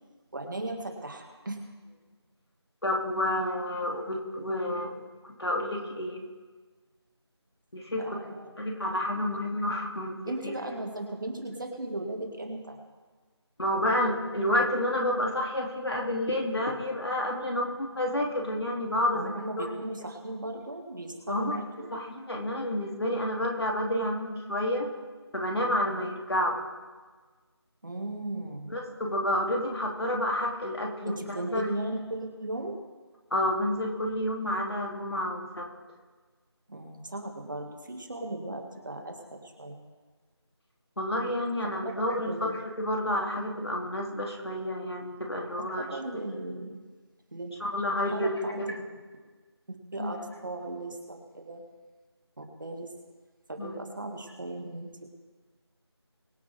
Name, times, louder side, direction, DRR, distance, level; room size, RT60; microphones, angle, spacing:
voice 1, 0.3-1.6 8.0-8.5 10.3-12.8 19.1-21.9 25.8-26.1 27.8-28.7 31.1-32.8 36.7-39.8 42.2-42.6 45.8-46.8 47.3-47.5 48.1-48.6 49.7-50.2 50.4-51.6 52.4-52.9 53.5-54.9, right 2 dB, 45° right, 3 dB, 2.3 m, -37 dB
voice 2, 2.8-6.2 7.7-8.2 8.6-10.2 10.4-10.5 13.6-19.2 19.6-19.7 21.3-21.6 21.9-24.9 25.3-26.6 28.7-31.7 33.3-35.7 41.0-42.5 42.8-45.8 47.6-48.7 50.0-50.2 53.6-53.7, left 1 dB, 65° left, 0 dB, 3.1 m, -29 dB
23.0 x 8.5 x 3.7 m, 1.4 s
figure-of-eight pair, 170°, 14 cm